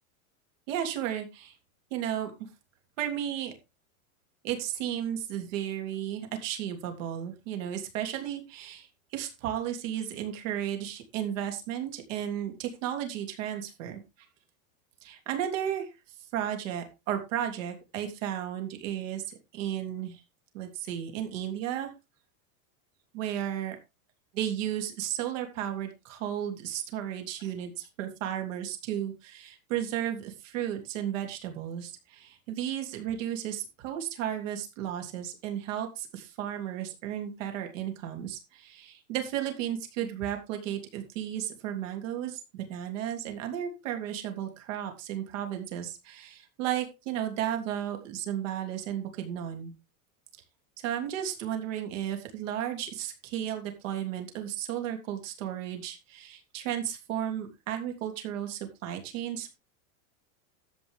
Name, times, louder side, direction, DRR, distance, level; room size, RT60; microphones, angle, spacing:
voice 1, 0.7-1.6 1.9-2.5 3.0-3.5 4.4-14.0 15.0-15.9 16.3-20.2 20.5-21.9 23.1-23.8 24.3-49.7 50.8-59.5, right 10 dB, 60° right, 4 dB, 3.1 m, -34 dB
13.0 x 8.3 x 3.6 m, 0.26 s
supercardioid pair, 170°, 42 cm